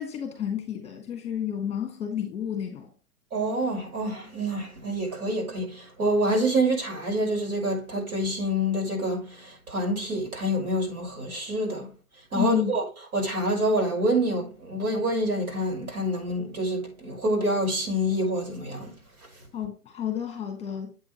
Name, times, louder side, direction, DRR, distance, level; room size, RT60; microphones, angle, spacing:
voice 1, 0.0-2.9 12.3-12.8 19.5-20.9, left 9 dB, 15° left, 1.5 m, -30 dB
voice 2, 3.3-11.9 12.3-12.8 13.1-18.9, right 1 dB, 70° right, 5.5 m, -27 dB
8.3 x 7.5 x 3.1 m
hypercardioid pair, 145°, 46 cm